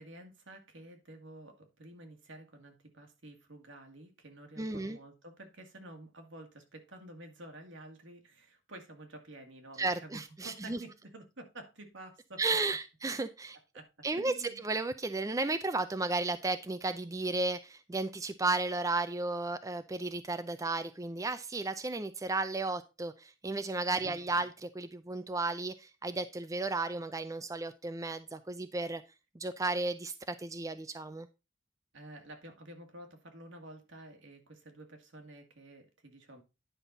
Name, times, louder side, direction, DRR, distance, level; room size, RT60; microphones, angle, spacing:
voice 1, 0.0-12.4 13.7-13.9 14.2-14.6 24.0-24.3 31.9-36.4, right 1 dB, 75° right, 2.1 m, -50 dB
voice 2, 4.6-5.0 9.8-10.8 12.4-13.6 14.0-29.0 29.4-31.3, right 3 dB, 15° right, 0.5 m, -34 dB
10.0 x 5.6 x 3.9 m
head